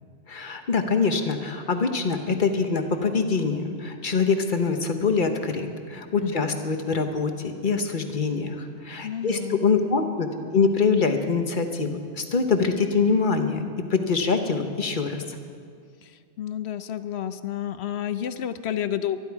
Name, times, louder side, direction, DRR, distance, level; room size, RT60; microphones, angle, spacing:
voice 1, 0.3-10.3 10.5-13.6 13.9-15.4, left 5 dB, 45° left, 6 dB, 1.2 m, -24 dB
voice 2, 6.2-6.6 9.0-9.7 16.0-19.2, left 10 dB, 70° left, 12 dB, 0.9 m, -31 dB
24.0 x 11.5 x 4.8 m, 2.2 s
omnidirectional pair, 1.2 m